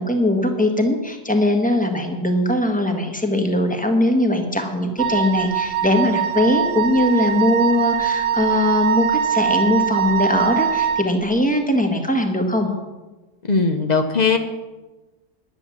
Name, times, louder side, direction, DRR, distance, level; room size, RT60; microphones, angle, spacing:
voice 1, 0.0-12.7, left 1 dB, 5° left, 3 dB, 1.3 m, -20 dB
Wind instrument woodwind instrument, 5.0-11.1, right 8 dB, 85° right, 1.6 m, -22 dB
voice 2, 13.5-14.4, left 4 dB, 85° left, 5 dB, 0.3 m, -18 dB
10.5 x 9.9 x 7.2 m, 1.2 s
omnidirectional pair, 2.0 m